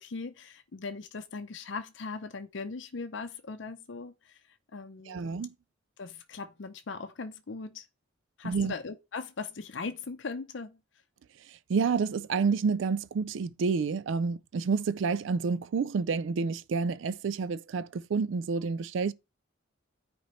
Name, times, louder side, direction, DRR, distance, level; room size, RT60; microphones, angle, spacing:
voice 1, 0.0-4.4 4.7-5.3 6.0-7.9 8.4-10.8, left 4 dB, 65° left, 0.6 m, -39 dB
voice 2, 5.1-5.5 8.4-8.7 11.7-19.1, right 5 dB, 70° right, 0.4 m, -29 dB
9.4 x 4.4 x 3.1 m
head